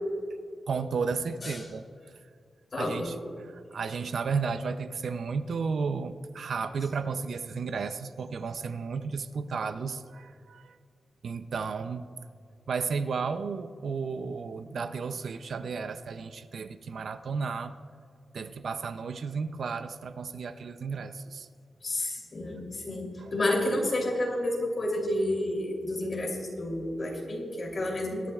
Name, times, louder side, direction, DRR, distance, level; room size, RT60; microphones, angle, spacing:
voice 1, 0.7-1.9 2.8-10.8 11.2-12.1 12.7-17.7 18.3-21.5 23.2-23.3, right 5 dB, 60° right, 11 dB, 0.5 m, -33 dB
voice 2, 2.7-3.1 21.8-28.3, left 1 dB, 35° left, -1 dB, 3.1 m, -30 dB
21.5 x 12.0 x 2.4 m, 2.2 s
wide cardioid pair, 155°, 0 cm